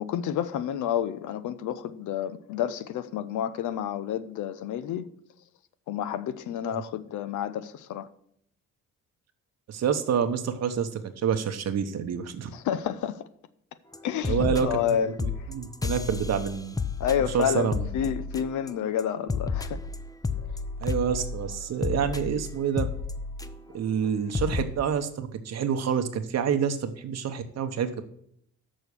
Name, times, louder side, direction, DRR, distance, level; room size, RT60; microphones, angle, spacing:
voice 1, 0.0-5.1 5.9-8.1 12.5-13.3 14.0-15.2 17.0-19.8, left 9 dB, 75° left, 0.7 m, -29 dB
voice 2, 9.7-12.5 14.2-16.7 17.3-17.9 20.8-22.9 23.7-28.0, right 7 dB, 60° right, 0.9 m, -28 dB
sound 1, 13.9-14.0 14.2-14.9 15.2-18.7 19.0-23.8 24.0-24.1 24.3-24.6, left 4 dB, 10° left, 0.6 m, -31 dB
6.4 x 6.2 x 6.8 m
cardioid pair, 90°, 30 cm